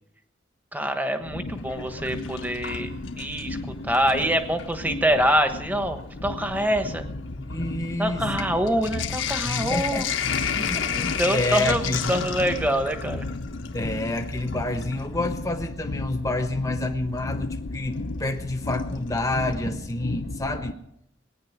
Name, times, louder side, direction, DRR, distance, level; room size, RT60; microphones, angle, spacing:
voice 1, 0.7-3.6 3.8-7.0 8.0-10.1 10.8-13.3, equal, 10° right, 7 dB, 1.2 m, -25 dB
sound 1, 1.2-20.7, left 2 dB, 70° left, 0.9 m, -34 dB
Sink (filling or washing), 1.6-3.6 3.9-4.8 5.6-5.7 5.9-15.1 16.8-16.9 18.7-19.2 19.5-19.6 19.8-19.9, left 8 dB, 85° left, 1.3 m, -32 dB
voice 2, 7.4-8.5 9.4-12.2 13.7-20.8, left 2 dB, 15° left, 5 dB, 1.0 m, -29 dB
18.5 x 10.0 x 7.3 m, 0.78 s
head